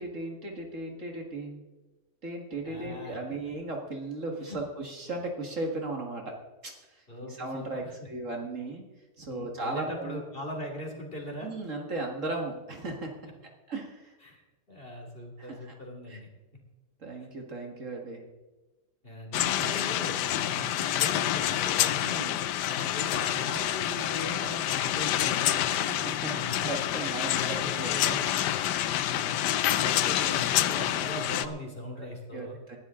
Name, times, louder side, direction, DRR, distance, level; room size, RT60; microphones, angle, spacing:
voice 1, 0.0-1.6 2.2-6.3 6.6-8.8 9.2-10.2 11.4-13.1 13.7-14.2 15.4-15.8 16.1-16.2 17.0-18.2 22.0-22.4 25.7-26.4 26.7-28.1 29.4-29.5 32.0-32.8, right 2 dB, 50° right, 2 dB, 2.1 m, -36 dB
voice 2, 2.6-3.2 4.4-4.6 7.1-8.1 9.3-11.5 14.2-14.4 14.7-16.3 19.0-25.8 26.3-26.7 27.2-28.2 29.1-32.6, left 1 dB, 35° left, 1 dB, 2.9 m, -40 dB
sound 1, 19.3-31.5, left 12 dB, 80° left, 1.2 m, -28 dB
18.5 x 12.0 x 3.7 m, 1.1 s
omnidirectional pair, 1.8 m